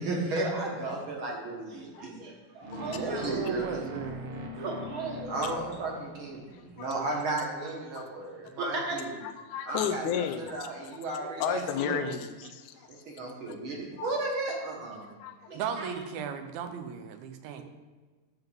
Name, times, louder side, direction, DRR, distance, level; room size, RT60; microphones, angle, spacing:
voice 1, 0.0-3.9 4.5-9.3 9.6-11.9 12.9-15.1 15.5-16.0 17.5-17.6, right 2 dB, 50° right, -1 dB, 1.8 m, -34 dB
sound 1, 2.6-6.7, left 1 dB, 70° right, 1.4 m, -42 dB
voice 2, 3.2-4.5 6.9-7.1 11.5-12.1 12.8-12.9 13.3-13.4 15.5-17.6, right 7 dB, 85° right, 8 dB, 2.6 m, -37 dB
voice 3, 6.5-6.9 7.9-8.0 9.2-10.7 11.4-13.5 14.0-14.1 15.2-15.6, left 8 dB, 85° left, 7 dB, 1.7 m, -34 dB
11.5 x 3.8 x 7.3 m, 1.3 s
omnidirectional pair, 4.2 m